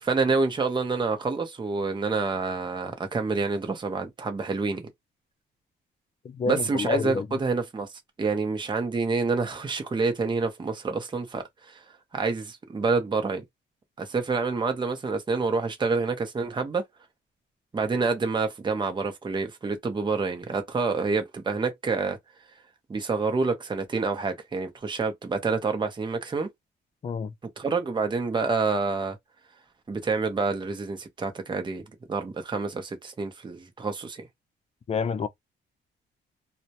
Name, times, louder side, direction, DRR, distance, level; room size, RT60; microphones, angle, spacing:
voice 1, 0.0-4.9 6.5-7.9 8.2-11.8 12.1-13.4 14.0-16.8 17.7-22.2 22.9-26.5 27.6-29.2 29.9-34.3, right 4 dB, 25° right, 0.7 m, -27 dB
voice 2, 6.2-7.3 27.0-27.3 34.9-35.3, left 5 dB, 30° left, 0.4 m, -28 dB
2.1 x 2.1 x 2.8 m
cardioid pair, 90°, 20 cm